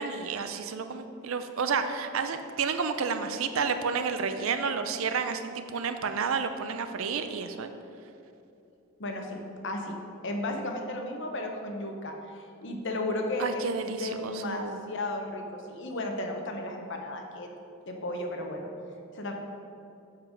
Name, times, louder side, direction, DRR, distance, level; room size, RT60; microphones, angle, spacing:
voice 1, 0.0-7.7 13.4-14.8, right 5 dB, 70° right, 8 dB, 0.5 m, -31 dB
voice 2, 9.0-10.0 10.2-17.5 17.9-18.7 19.1-19.3, left 1 dB, 60° left, 3 dB, 0.9 m, -34 dB
7.3 x 5.5 x 5.1 m, 2.8 s
head